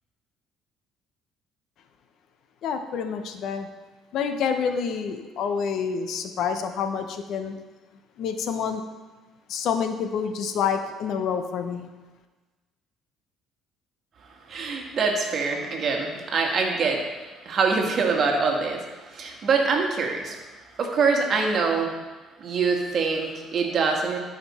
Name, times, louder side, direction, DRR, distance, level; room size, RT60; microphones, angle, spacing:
voice 1, 2.6-3.7 4.1-7.5 8.2-8.8 9.5-11.9, left 6 dB, 65° left, 7 dB, 0.8 m, -28 dB
voice 2, 14.5-17.0 17.4-18.8 19.1-20.3 20.8-21.9 22.4-24.2, right 4 dB, 50° right, 2 dB, 1.6 m, -24 dB
12.5 x 5.2 x 4.2 m, 1.3 s
cardioid pair, 105°, 0 cm